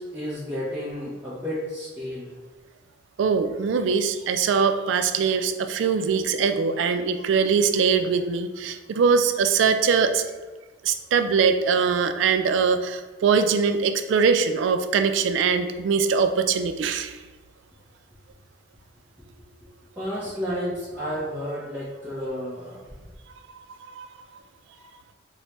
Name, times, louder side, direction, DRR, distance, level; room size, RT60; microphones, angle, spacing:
voice 1, 0.0-2.3 20.0-22.8 24.7-25.0, equal, 10° right, -10 dB, 0.6 m, -32 dB
voice 2, 3.2-10.2 10.8-17.2 23.9-24.1, right 5 dB, 85° right, 8 dB, 0.3 m, -22 dB
4.4 x 2.1 x 2.9 m, 1.3 s
head